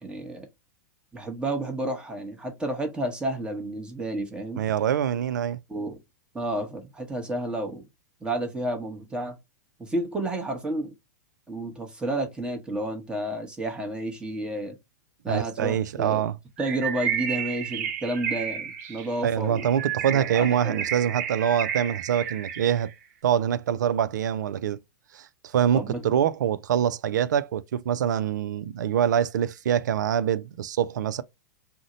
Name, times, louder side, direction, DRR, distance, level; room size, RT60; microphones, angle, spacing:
voice 1, 0.0-0.5 1.1-4.6 5.7-6.0 6.3-7.8 8.2-9.4 9.8-10.9 11.5-14.7 15.2-16.3 16.6-19.7 20.1-20.8 25.7-26.0, right 1 dB, 10° right, 0.9 m, -31 dB
voice 2, 4.6-5.6 15.3-16.4 19.2-22.9 23.2-24.8 25.1-31.2, right 9 dB, 85° right, 0.4 m, -25 dB
Bird, 16.6-22.9, right 8 dB, 55° right, 0.8 m, -32 dB
2.6 x 2.1 x 3.8 m
hypercardioid pair, 125°, 10 cm